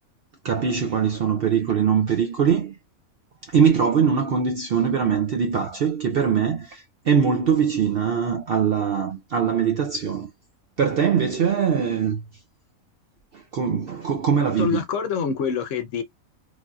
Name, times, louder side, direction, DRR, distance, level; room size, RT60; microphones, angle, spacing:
voice 1, 0.4-2.8 3.5-10.3 10.8-12.2 13.3-14.8, right 7 dB, 65° right, 0.6 m, -22 dB
voice 2, 14.6-16.0, left 7 dB, 70° left, 0.9 m, -26 dB
3.2 x 2.6 x 2.3 m
omnidirectional pair, 1.5 m